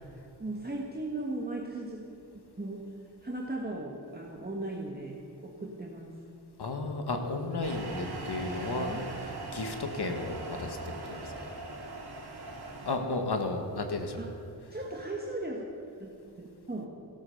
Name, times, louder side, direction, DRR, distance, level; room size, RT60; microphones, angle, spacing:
voice 1, 0.4-2.2 2.6-2.9 3.2-6.1 8.5-9.1 14.2-14.3 14.7-15.6 16.0-16.1 16.4-16.9, right 2 dB, 25° right, -1 dB, 1.6 m, -37 dB
voice 2, 6.6-8.9 9.1-11.3 12.9-14.2, left 3 dB, 70° left, 5 dB, 1.9 m, -33 dB
sound 1, 7.6-13.0, right 2 dB, 65° right, 2.9 m, -40 dB
16.0 x 12.5 x 6.6 m, 2.9 s
wide cardioid pair, 95°, 41 cm